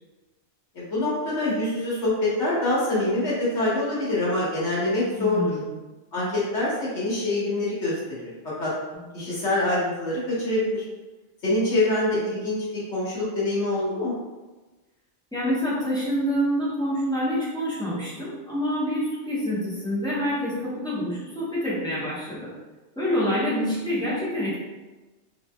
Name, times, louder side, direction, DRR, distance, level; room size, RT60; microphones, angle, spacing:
voice 1, 0.7-5.4 6.1-7.9 8.2-8.3 8.6-8.7 9.1-10.8 11.4-14.1, left 2 dB, 65° left, -8 dB, 1.4 m, -25 dB
voice 2, 5.2-5.7 9.1-9.4 15.3-22.5 23.0-24.6, equal, 5° left, -9 dB, 0.6 m, -27 dB
2.8 x 2.8 x 2.2 m, 1.2 s
omnidirectional pair, 1.3 m